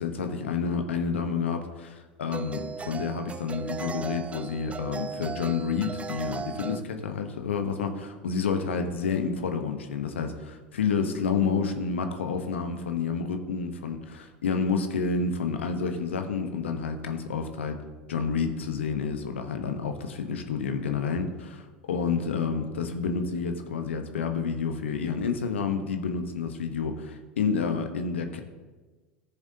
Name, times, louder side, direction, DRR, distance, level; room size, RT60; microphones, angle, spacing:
voice 1, 0.0-17.8 18.1-28.4, left 5 dB, 85° left, 6 dB, 1.0 m, -29 dB
sound 1, 0.9-1.1 2.3-6.8, right 5 dB, 20° right, 0.4 m, -37 dB
14.0 x 7.0 x 2.8 m, 1.3 s
hypercardioid pair, 80°, 6 cm